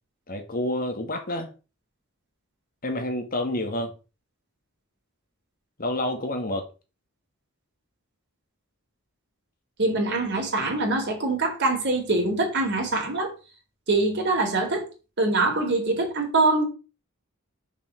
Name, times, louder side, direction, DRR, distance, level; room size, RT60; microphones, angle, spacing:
voice 1, 0.3-1.5 2.8-3.9 5.8-6.7, left 1 dB, 40° left, 2.0 m, -28 dB
voice 2, 9.8-13.3 13.9-14.8 15.2-16.7, right 2 dB, 55° right, 4.0 m, -24 dB
6.9 x 5.7 x 7.1 m
head